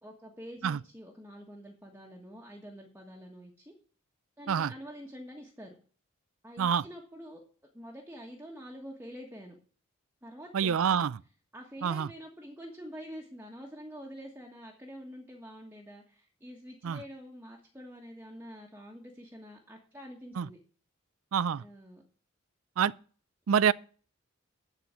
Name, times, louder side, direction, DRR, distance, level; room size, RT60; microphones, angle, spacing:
voice 1, 0.0-3.7 4.4-5.7 6.4-7.4 7.7-9.6 10.2-11.0 11.5-20.6 21.6-22.0, equal, 10° right, 1.4 m, -47 dB
voice 2, 10.5-11.1 11.8-12.1 16.8-17.0 20.4-20.5 21.3-21.6 22.8-22.9 23.5-23.7, right 7 dB, 75° right, 0.4 m, -26 dB
11.5 x 4.5 x 8.2 m
head